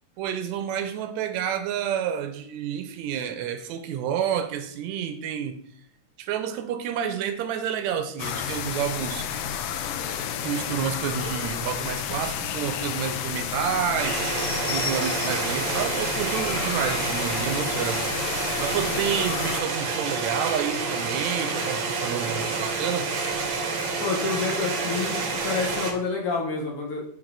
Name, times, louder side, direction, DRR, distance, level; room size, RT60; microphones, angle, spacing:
voice 1, 0.2-5.6 6.2-9.3 10.4-23.1, right 8 dB, 80° right, 9 dB, 1.9 m, -29 dB
sound 1, 8.2-19.6, left 8 dB, 80° left, 1.5 m, -31 dB
sound 2, 14.0-25.9, right 4 dB, 60° right, 1.3 m, -29 dB
voice 2, 24.0-27.0, left 4 dB, 60° left, 0 dB, 1.7 m, -28 dB
8.8 x 3.7 x 3.9 m, 0.66 s
omnidirectional pair, 3.3 m